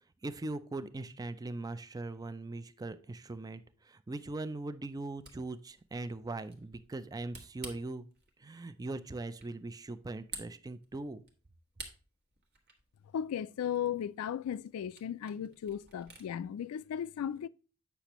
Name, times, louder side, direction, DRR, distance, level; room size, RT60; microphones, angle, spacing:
voice 1, 0.2-8.1 8.4-11.2, right 2 dB, 15° right, 0.4 m, -40 dB
Camera, 5.1-16.3, right 3 dB, 50° right, 1.3 m, -53 dB
voice 2, 13.1-17.5, left 9 dB, 85° left, 0.3 m, -36 dB
8.4 x 5.8 x 3.0 m
head